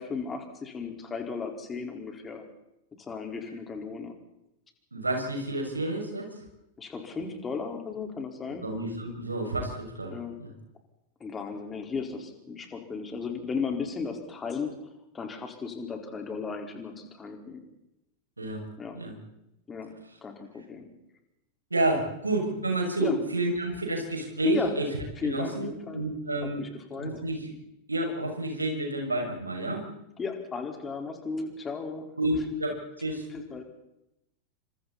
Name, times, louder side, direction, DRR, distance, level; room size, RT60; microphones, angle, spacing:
voice 1, 0.0-2.4 3.0-4.1 6.8-8.6 10.1-10.4 11.2-14.8 15.1-17.6 18.8-19.0 19.7-19.9 20.2-20.9 23.0-23.1 24.4-24.7 25.2-26.0 26.6-27.1 30.2-32.0 33.3-33.6, left 4 dB, 20° left, 3 dB, 4.6 m, -35 dB
voice 2, 4.9-6.3 8.6-10.5 18.4-18.6 18.9-19.1 21.7-24.9 25.2-26.6 26.9-27.5 27.9-29.8 32.2-33.2, right 1 dB, 80° right, 2 dB, 6.6 m, -30 dB
29.0 x 26.0 x 4.3 m, 0.86 s
figure-of-eight pair, 90°, 0 cm